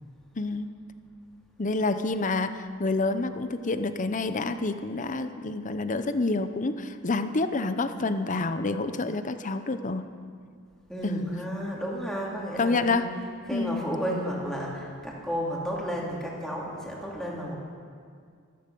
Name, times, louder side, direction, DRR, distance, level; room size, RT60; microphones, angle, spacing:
voice 1, 0.4-0.7 1.6-10.0 11.0-11.3 12.6-13.1 13.5-13.8, left 3 dB, 35° left, 10 dB, 0.7 m, -28 dB
voice 2, 10.9-17.6, equal, ahead, -4 dB, 2.8 m, -32 dB
13.5 x 13.0 x 6.9 m, 2.1 s
head